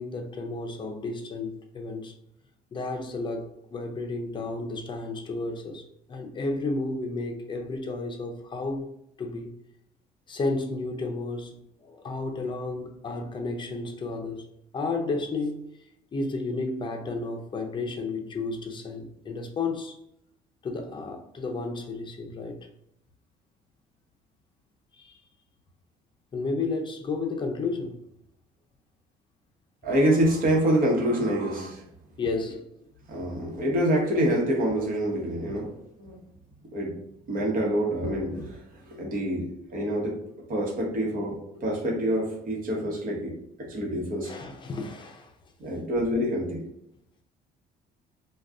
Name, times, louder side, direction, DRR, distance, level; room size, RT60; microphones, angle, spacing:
voice 1, 0.0-2.1 2.7-8.9 9.2-9.5 10.3-11.6 11.8-14.5 14.7-15.6 16.1-20.0 20.6-22.6 24.9-25.2 26.3-28.0 32.2-32.7 44.2-45.3, left 3 dB, 30° left, 0.5 m, -32 dB
voice 2, 29.8-31.8 33.1-36.1 36.7-37.0 37.3-38.6 38.9-40.2 40.5-43.3 43.6-44.3 45.6-46.6, right 1 dB, 55° right, 1.1 m, -26 dB
2.5 x 2.3 x 3.5 m
cardioid pair, 110°, 17 cm